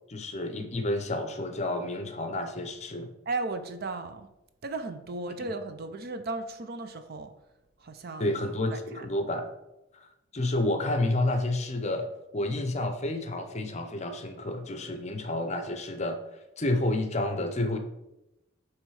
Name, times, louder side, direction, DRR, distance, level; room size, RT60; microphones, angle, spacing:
voice 1, 0.1-3.1 8.2-9.5 9.9-10.1 10.3-12.1 12.3-16.2 16.6-17.8, left 1 dB, 35° left, 7 dB, 0.7 m, -30 dB
voice 2, 3.3-4.3 4.6-7.3 7.8-8.3 8.7-9.1, right 3 dB, 50° right, 8 dB, 0.6 m, -35 dB
9.0 x 3.2 x 4.7 m, 0.93 s
head